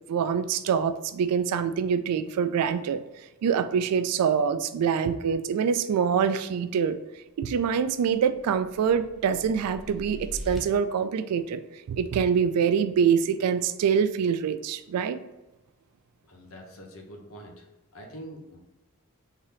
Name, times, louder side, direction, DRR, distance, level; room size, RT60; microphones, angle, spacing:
voice 1, 0.1-3.0 3.4-7.0 7.4-11.6 11.9-15.2, right 7 dB, 90° right, 12 dB, 0.3 m, -25 dB
sound 1, 7.8-10.6, equal, ahead, 0.5 m, -41 dB
voice 2, 16.3-17.7 17.9-18.6, equal, 65° left, 2 dB, 0.8 m, -44 dB
3.8 x 2.7 x 3.3 m, 1.0 s
head